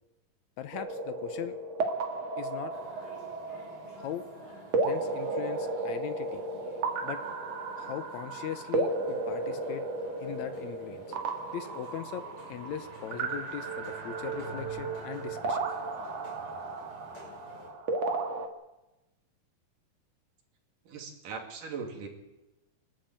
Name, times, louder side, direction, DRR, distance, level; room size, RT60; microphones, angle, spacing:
voice 1, 0.6-1.6 2.4-2.7 4.0-4.3 4.8-6.4 7.0-7.2 7.7-9.8 10.2-11.2 11.5-15.7, left 10 dB, 70° left, 11 dB, 2.1 m, -39 dB
sound 1, 0.7-18.5, right 3 dB, 55° right, 2.8 m, -34 dB
sound 2, 2.7-17.7, left 2 dB, 45° left, 6.5 m, -52 dB
sound 3, 12.2-16.5, right 6 dB, 20° right, 2.8 m, -41 dB
voice 2, 20.9-22.1, right 5 dB, 80° right, 3 dB, 4.3 m, -39 dB
25.0 x 12.0 x 9.2 m, 0.99 s
omnidirectional pair, 3.7 m